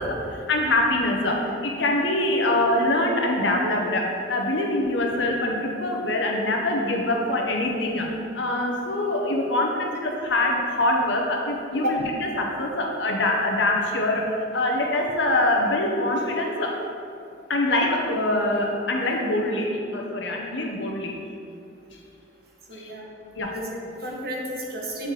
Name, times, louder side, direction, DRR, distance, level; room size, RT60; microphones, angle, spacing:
voice 1, 0.0-8.1 8.3-12.0 12.4-16.8 17.5-21.1 22.8-22.9 23.4-23.6, left 1 dB, 70° left, 0 dB, 0.8 m, -24 dB
voice 2, 22.7-23.1 23.5-25.1, equal, 55° right, -2 dB, 1.0 m, -32 dB
7.5 x 4.1 x 3.3 m, 2.5 s
head